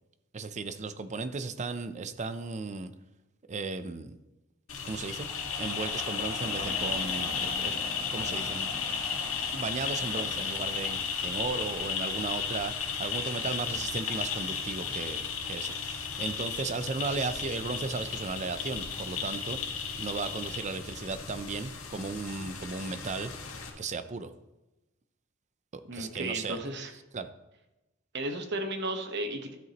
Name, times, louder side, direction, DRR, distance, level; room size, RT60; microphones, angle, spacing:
voice 1, 0.3-2.9 3.5-4.2 4.8-5.3 5.6-7.7 8.1-8.7 9.5-19.6 20.0-23.3 23.8-24.3 25.7-26.6 27.1-27.3, right 4 dB, 35° right, 11 dB, 0.5 m, -35 dB
sound 1, 4.7-23.7, left 6 dB, 80° left, 1.6 m, -34 dB
sound 2, 6.4-11.8, equal, 20° right, 3.5 m, -48 dB
voice 2, 25.9-26.9 28.1-29.5, right 2 dB, 55° right, 5 dB, 1.1 m, -34 dB
12.5 x 7.9 x 3.0 m, 1.0 s
head